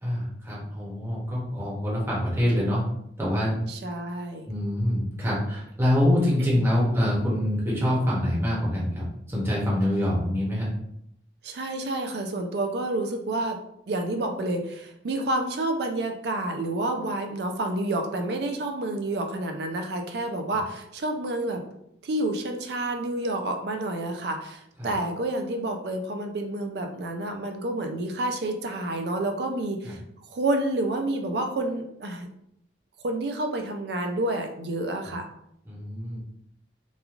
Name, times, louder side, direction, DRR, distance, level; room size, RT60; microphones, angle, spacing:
voice 1, 0.0-2.8 3.2-3.6 4.5-10.7 24.8-24.9 29.8-29.9 35.7-36.2, left 1 dB, 15° right, -6 dB, 0.7 m, -25 dB
voice 2, 3.7-4.5 6.5-6.7 11.4-13.6 13.9-21.6 22.0-30.0 30.3-32.3 33.0-35.3, right 2 dB, 60° right, 5 dB, 0.4 m, -29 dB
3.0 x 2.3 x 2.4 m, 0.76 s
head